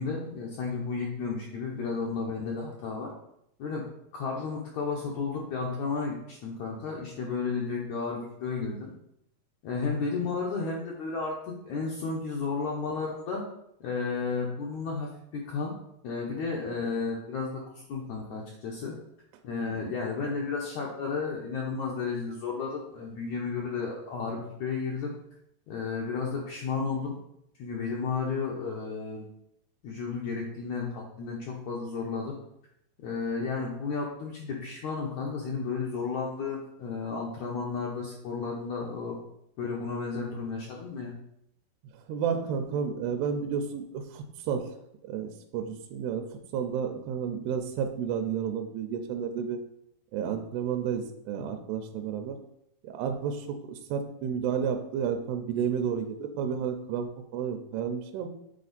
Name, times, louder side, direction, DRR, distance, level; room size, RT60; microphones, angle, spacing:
voice 1, 0.0-3.1 3.6-3.9 4.1-8.9 9.6-13.4 13.8-15.7 16.0-18.9 19.4-25.1 25.7-27.2 27.6-29.2 29.8-32.4 33.0-39.2 39.6-41.1, left 4 dB, 90° left, -3 dB, 1.6 m, -33 dB
voice 2, 41.9-44.8 45.0-49.6 50.1-52.4 52.8-58.3, right 7 dB, 85° right, 6 dB, 2.6 m, -31 dB
8.8 x 4.3 x 4.1 m, 0.77 s
omnidirectional pair, 4.7 m